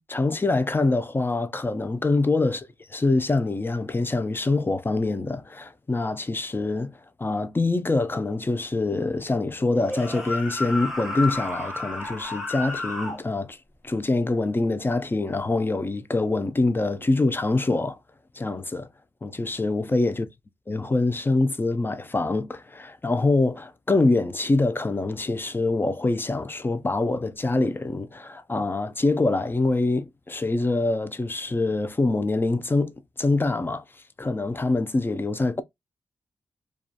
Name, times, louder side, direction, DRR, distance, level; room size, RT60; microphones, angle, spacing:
voice 1, 0.0-6.9 7.2-13.6 13.8-18.0 18.4-18.9 19.2-20.3 20.7-33.8 34.2-35.6, left 2 dB, 20° left, 0.4 m, -25 dB
sound 1, 9.8-13.2, left 2 dB, 5° right, 0.7 m, -31 dB
2.3 x 2.1 x 2.6 m
cardioid pair, 55°, 10 cm